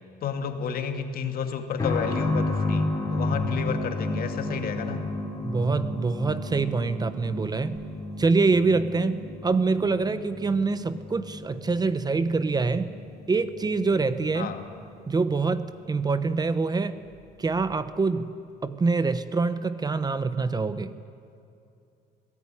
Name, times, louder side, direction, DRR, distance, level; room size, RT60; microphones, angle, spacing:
voice 1, 0.2-5.0 14.3-14.6, left 7 dB, 60° left, 6 dB, 2.4 m, -31 dB
sound 1, 1.8-16.2 16.5-16.6 17.5-17.6, left 2 dB, 20° left, 6.3 m, -32 dB
voice 2, 5.4-7.8 8.2-12.9 13.3-14.5 15.1-17.0 17.4-18.3 18.6-20.9, right 4 dB, 25° right, 13 dB, 1.0 m, -25 dB
26.5 x 18.5 x 9.9 m, 2.5 s
cardioid pair, 110°, 17 cm